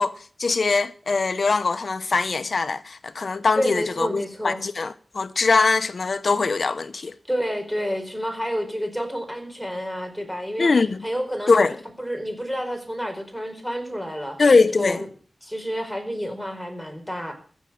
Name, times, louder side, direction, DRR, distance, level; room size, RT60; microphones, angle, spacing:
voice 1, 0.0-7.1 10.6-11.0 11.5-11.8 14.4-15.0, left 4 dB, 60° left, 0.8 m, -22 dB
voice 2, 3.6-4.6 7.3-10.7 11.0-14.4 14.7-15.1 15.4-17.3, equal, ahead, 4.5 m, -29 dB
15.5 x 7.4 x 8.8 m
wide cardioid pair, 100°, 0 cm